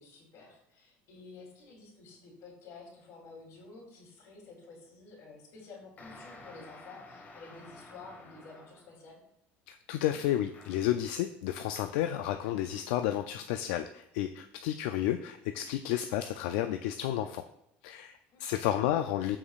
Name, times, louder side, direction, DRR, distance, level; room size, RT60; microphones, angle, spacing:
voice 1, 0.0-9.2 18.3-18.6, left 4 dB, 65° left, 0 dB, 3.0 m, -51 dB
sound 1, 6.0-9.0 10.2-11.0, left 2 dB, 30° left, 1.5 m, -52 dB
voice 2, 9.7-17.4 17.8-18.1 18.4-19.4, left 12 dB, 85° left, 8 dB, 0.4 m, -31 dB
14.0 x 4.9 x 2.4 m, 0.82 s
cardioid pair, 125°, 6 cm